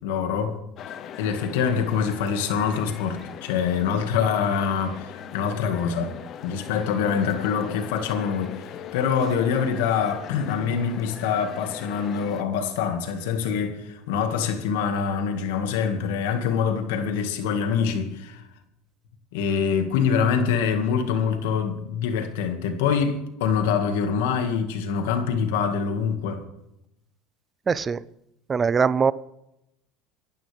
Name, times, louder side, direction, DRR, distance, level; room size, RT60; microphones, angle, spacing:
voice 1, 0.0-0.6 1.2-6.1 6.4-18.4 19.3-26.4, left 6 dB, 85° left, 2.0 m, -25 dB
sound 1, 0.8-12.4, left 9 dB, 45° left, 1.0 m, -40 dB
voice 2, 27.7-28.0 28.5-29.1, right 6 dB, 25° right, 0.5 m, -21 dB
24.0 x 11.5 x 3.6 m
supercardioid pair, 115°, 0 cm